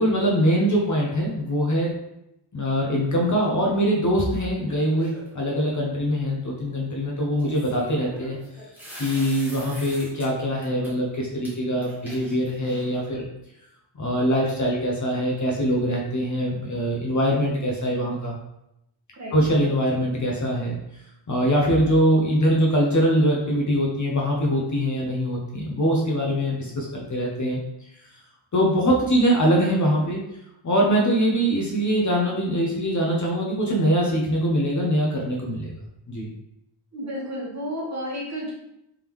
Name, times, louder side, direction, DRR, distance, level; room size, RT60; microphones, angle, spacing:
voice 1, 0.0-1.9 2.5-8.4 9.0-13.3 14.0-18.4 19.3-20.8 21.3-27.6 28.5-30.2 30.6-35.7 36.1-36.3, equal, 35° left, -2 dB, 0.7 m, -23 dB
sound 1, 4.7-5.4 7.4-10.3 10.6-10.9 11.4-11.5 11.8-13.0, equal, 5° right, 1.2 m, -42 dB
voice 2, 36.9-38.5, equal, 35° right, -5 dB, 1.2 m, -31 dB
3.6 x 3.5 x 3.0 m, 0.84 s
wide cardioid pair, 160°, 49 cm